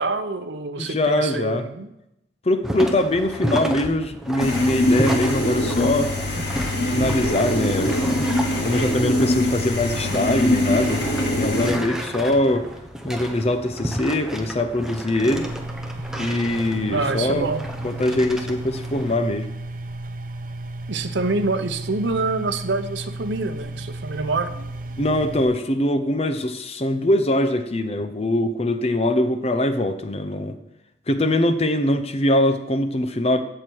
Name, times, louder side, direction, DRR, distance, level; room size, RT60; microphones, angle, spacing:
voice 1, 0.0-1.9 16.9-17.6 20.9-24.5, right 3 dB, 75° right, 7 dB, 0.8 m, -26 dB
voice 2, 0.8-1.7 2.4-6.1 6.9-7.9 8.6-11.1 11.3-12.7 13.0-15.5 16.2-17.5 17.8-19.5 25.0-30.5 31.1-33.4, left 1 dB, 35° left, 9 dB, 0.7 m, -22 dB
sound 1, 2.6-19.2, equal, 5° right, 1.0 m, -32 dB
sound 2, 4.4-11.7, left 1 dB, 65° left, 2.9 m, -23 dB
sound 3, 15.3-25.4, right 2 dB, 45° right, 0.8 m, -34 dB
16.5 x 6.8 x 4.6 m, 0.86 s
head